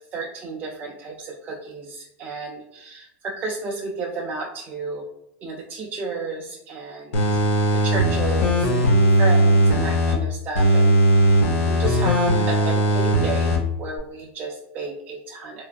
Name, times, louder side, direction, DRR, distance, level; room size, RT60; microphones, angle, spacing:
voice 1, 0.1-5.1 5.4-7.3 7.7-11.4 11.7-15.6, right 3 dB, 20° right, -3 dB, 0.3 m, -32 dB
sound 1, 7.1-10.1 10.5-13.6 14.0-14.1, right 1 dB, 70° left, 0.8 m, -18 dB
3.1 x 2.3 x 2.4 m, 0.82 s
supercardioid pair, 145°, 7 cm